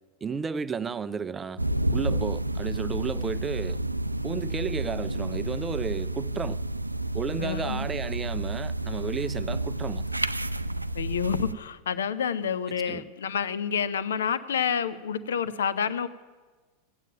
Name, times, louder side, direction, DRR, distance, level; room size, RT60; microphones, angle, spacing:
voice 1, 0.2-1.6 1.9-3.8 4.2-6.6 7.1-10.0 12.9-13.1, right 5 dB, 20° right, 0.4 m, -33 dB
sound 1, 1.6-11.5, right 1 dB, 85° right, 0.4 m, -30 dB
voice 2, 7.4-7.8 10.9-16.1, left 7 dB, 65° left, 0.7 m, -29 dB
15.5 x 9.2 x 9.0 m
figure-of-eight pair, 90°, 0 cm